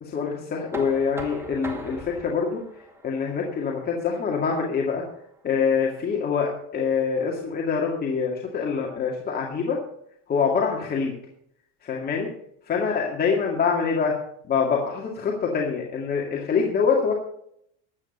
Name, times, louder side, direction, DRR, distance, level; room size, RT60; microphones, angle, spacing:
voice 1, 0.0-2.6 3.0-5.0 5.4-9.8 10.3-11.1 11.8-12.3 12.7-14.1 14.5-17.1, left 6 dB, 25° left, -1 dB, 2.2 m, -25 dB
Knock, 0.7-6.5, right 1 dB, 5° right, 2.0 m, -42 dB
13.5 x 8.8 x 5.5 m, 0.70 s
supercardioid pair, 135°, 34 cm